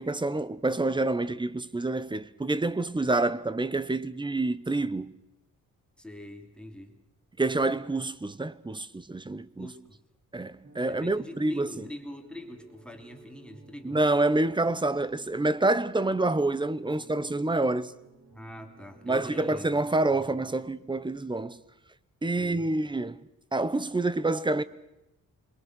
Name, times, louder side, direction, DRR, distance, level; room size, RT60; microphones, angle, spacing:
voice 1, 0.0-5.1 7.4-9.7 10.3-11.7 13.8-17.9 19.1-21.6 22.2-23.2 23.5-24.6, right 2 dB, 15° right, 1.0 m, -27 dB
voice 2, 6.0-7.0 9.6-10.0 10.9-14.0 18.3-19.7 20.1-20.4 22.3-22.7, left 1 dB, 5° left, 3.0 m, -44 dB
sound 1, 10.6-21.2, right 3 dB, 45° right, 2.7 m, -55 dB
27.0 x 22.5 x 6.3 m
cardioid pair, 110°, 32 cm